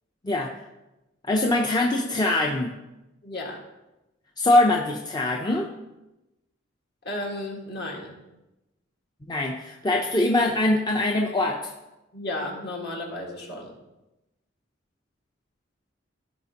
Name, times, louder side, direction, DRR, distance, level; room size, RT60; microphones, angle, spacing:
voice 1, 1.3-2.7 4.4-5.7 9.2-11.7, left 2 dB, 20° left, 0 dB, 0.5 m, -23 dB
voice 2, 3.2-3.6 7.0-8.1 12.1-13.7, left 1 dB, 55° left, -1 dB, 1.8 m, -33 dB
15.0 x 5.0 x 2.9 m, 0.98 s
head